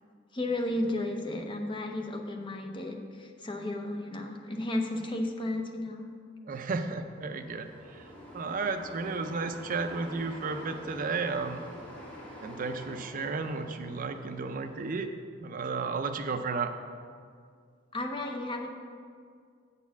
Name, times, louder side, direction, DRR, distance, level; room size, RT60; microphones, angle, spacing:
voice 1, 0.3-6.1 17.9-18.7, left 1 dB, 25° left, 2 dB, 0.7 m, -33 dB
voice 2, 6.5-11.6 12.4-15.1 15.4-16.7, right 4 dB, 45° right, 7 dB, 0.4 m, -33 dB
sound 1, 7.1-15.0, equal, 10° left, 1.5 m, -47 dB
8.2 x 4.2 x 7.0 m, 2.1 s
head